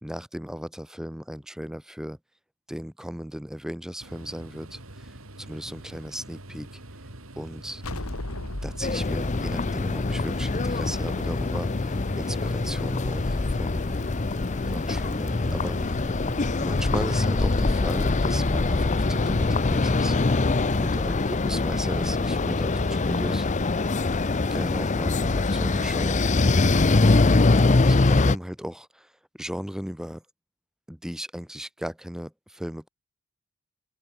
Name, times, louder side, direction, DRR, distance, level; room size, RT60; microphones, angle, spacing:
voice 1, 0.0-2.2 2.7-6.7 7.4-7.8 8.6-13.9 14.7-16.1 16.5-20.4 20.8-23.5 24.5-26.2 27.6-30.2 30.9-32.9, equal, 5° right, 0.7 m, -36 dB
sound 1, 4.0-21.1, right 1 dB, 65° right, 3.5 m, -44 dB
sound 2, 7.8-11.3, left 1 dB, 85° left, 2.8 m, -37 dB
sound 3, 8.8-28.4, left 3 dB, 35° left, 0.7 m, -23 dB
open air
head